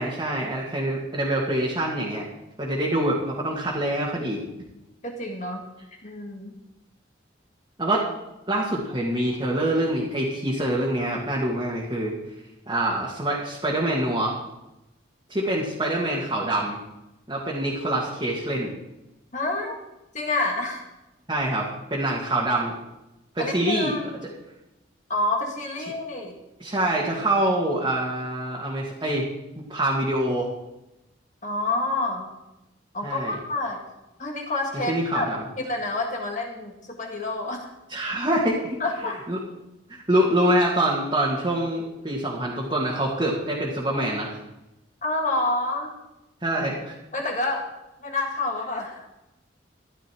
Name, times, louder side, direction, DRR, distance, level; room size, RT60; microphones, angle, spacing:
voice 1, 0.0-2.2 2.6-4.4 7.8-8.1 8.5-12.1 12.7-14.4 15.3-16.8 17.3-18.7 21.3-22.8 23.3-24.0 25.8-25.9 26.6-29.2 29.7-30.5 33.0-33.4 34.9-35.4 37.9-38.8 39.3-39.4 40.1-44.4 46.4-46.9, right 1 dB, 25° right, -5 dB, 2.2 m, -25 dB
voice 2, 5.0-5.6 6.0-6.6 19.3-19.8 20.1-20.8 23.4-24.2 25.1-26.4 31.4-32.3 32.9-33.8 34.2-35.3 35.6-37.7 38.8-39.2 45.0-45.9 47.1-47.7 48.0-49.0, left 2 dB, 40° left, 1 dB, 1.9 m, -28 dB
13.5 x 12.0 x 4.7 m, 0.94 s
head